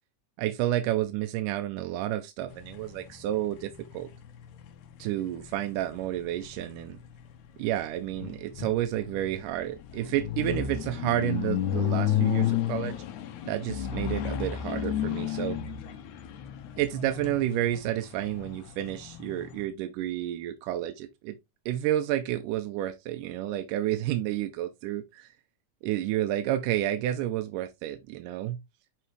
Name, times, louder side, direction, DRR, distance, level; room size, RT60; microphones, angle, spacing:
voice 1, 0.4-4.1 5.0-7.0 7.6-13.0 13.5-15.6 16.8-21.4 21.7-25.3 25.8-28.6, right 13 dB, 90° right, 2.2 m, -30 dB
sound 1, 2.5-19.7, left 10 dB, 75° left, 2.1 m, -33 dB
5.8 x 5.5 x 3.1 m
omnidirectional pair, 3.6 m